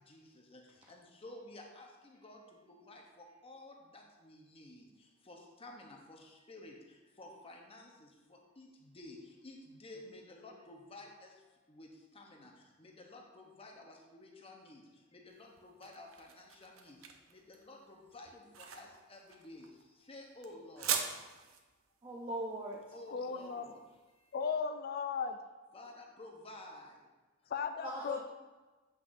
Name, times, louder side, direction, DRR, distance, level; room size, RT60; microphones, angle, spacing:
voice 1, 0.1-0.6 0.9-2.4 2.7-4.8 5.3-6.8 7.2-9.2 9.4-11.3 11.7-12.5 12.8-14.8 15.1-17.0 17.3-19.7 20.1-21.0 22.9-23.8 25.7-26.9, left 2 dB, 25° left, 1 dB, 0.9 m, -52 dB
sound 1, 15.3-24.3, right 7 dB, 70° right, 0.6 m, -42 dB
voice 2, 22.0-22.8 27.8-28.2, right 1 dB, 25° right, -3 dB, 0.7 m, -39 dB
voice 3, 23.1-23.7 24.3-25.4 27.5-28.2, left 6 dB, 45° left, 7 dB, 0.4 m, -36 dB
8.0 x 5.9 x 2.6 m, 1.2 s
head